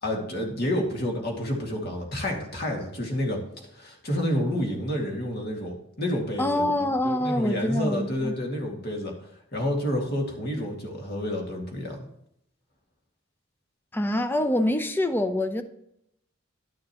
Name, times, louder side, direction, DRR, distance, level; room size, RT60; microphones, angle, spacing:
voice 1, 0.0-3.4 3.7-9.1 9.5-12.0, equal, 50° left, 2.1 m, -29 dB
voice 2, 6.4-8.4 13.9-15.6, left 1 dB, 10° left, 0.6 m, -25 dB
11.5 x 6.5 x 2.9 m
head